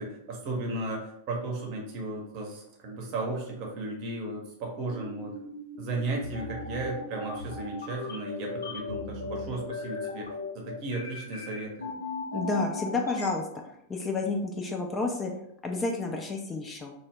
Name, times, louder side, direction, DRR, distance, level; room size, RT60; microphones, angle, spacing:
voice 1, 0.0-5.3 5.8-11.9, right 2 dB, 40° right, 0 dB, 0.7 m, -35 dB
sound 1, 4.9-13.3, left 3 dB, 75° left, 0.5 m, -37 dB
voice 2, 12.3-13.5 13.9-15.3 15.6-16.9, left 3 dB, 20° left, 2 dB, 0.3 m, -30 dB
2.1 x 2.0 x 3.3 m, 0.77 s
figure-of-eight pair, 90°, 0 cm